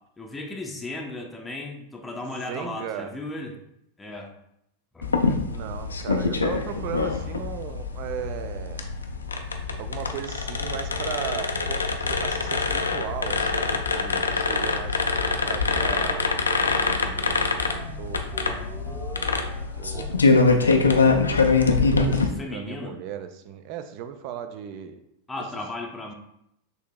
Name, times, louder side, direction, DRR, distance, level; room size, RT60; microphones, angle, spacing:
voice 1, 0.2-3.6 4.0-4.3 4.9-5.4 22.1-23.0 25.3-26.1, left 2 dB, 10° left, 0 dB, 0.5 m, -35 dB
voice 2, 2.2-3.1 5.4-8.9 9.8-16.3 16.6-18.3 19.8-25.0, right 9 dB, 45° right, 9 dB, 0.4 m, -37 dB
sound 1, 5.0-22.3, left 4 dB, 75° left, 0.4 m, -24 dB
sound 2, 13.7-20.1, right 2 dB, 25° right, 0.8 m, -43 dB
6.5 x 2.7 x 2.2 m, 0.78 s
figure-of-eight pair, 90°, 0 cm